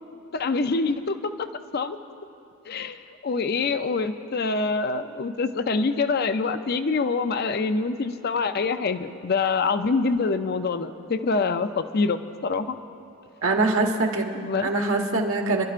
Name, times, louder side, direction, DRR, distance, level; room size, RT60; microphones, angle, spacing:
voice 1, 0.3-1.5 1.7-2.0 2.7-12.8 14.3-14.7, left 4 dB, 45° left, 10 dB, 0.5 m, -25 dB
voice 2, 13.4-15.6, right 2 dB, 75° right, 2 dB, 1.3 m, -24 dB
27.5 x 12.0 x 2.5 m, 2.7 s
head